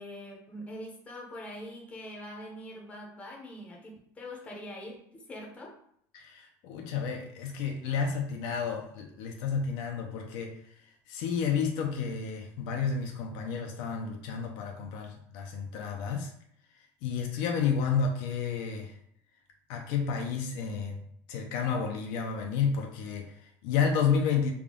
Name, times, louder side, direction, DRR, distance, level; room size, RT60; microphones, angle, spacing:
voice 1, 0.0-5.7, left 1 dB, 15° left, -1 dB, 0.7 m, -43 dB
voice 2, 6.1-10.7 11.1-16.3 17.0-19.0 19.7-24.5, left 6 dB, 60° left, 2 dB, 0.5 m, -31 dB
3.5 x 2.3 x 3.7 m, 0.68 s
cardioid pair, 160°, 9 cm